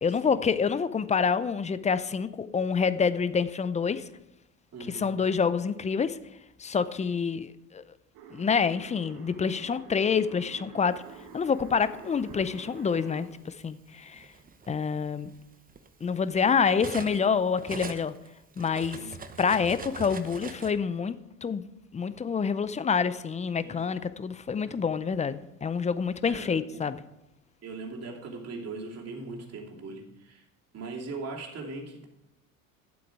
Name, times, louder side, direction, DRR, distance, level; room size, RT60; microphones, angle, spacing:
voice 1, 0.0-4.1 4.9-6.2 6.6-7.8 8.3-11.0 11.3-14.3 14.7-15.3 16.0-18.1 18.6-19.0 19.4-21.6 21.9-27.1, left 6 dB, 15° left, 0.5 m, -27 dB
voice 2, 4.7-5.1 18.8-19.1 23.6-23.8 24.6-24.8 26.2-26.6 27.6-30.4 30.7-32.1, right 3 dB, 40° right, 2.8 m, -40 dB
sound 1, 8.1-13.2, right 7 dB, 60° right, 1.9 m, -48 dB
Cutlery silverware, 11.2-12.5 13.4-13.6 14.0-17.3 17.6-20.7, right 5 dB, 20° right, 0.9 m, -42 dB
12.0 x 7.8 x 4.7 m
hypercardioid pair, 85°, 40 cm